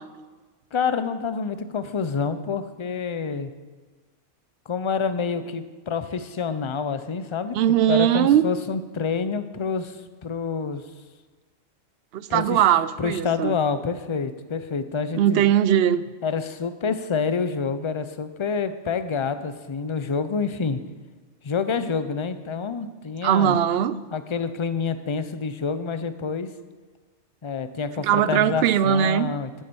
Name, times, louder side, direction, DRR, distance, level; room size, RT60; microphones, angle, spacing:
voice 1, 0.7-3.5 4.7-10.9 12.3-12.6 13.0-15.4 16.2-20.8 21.4-23.6 24.1-26.5 27.4-29.6, left 5 dB, 35° left, 11 dB, 0.5 m, -27 dB
voice 2, 7.6-8.4 12.1-13.5 15.1-16.0 23.2-24.0 28.0-29.3, right 10 dB, 65° right, 15 dB, 0.7 m, -20 dB
13.0 x 7.2 x 7.0 m, 1.3 s
omnidirectional pair, 1.2 m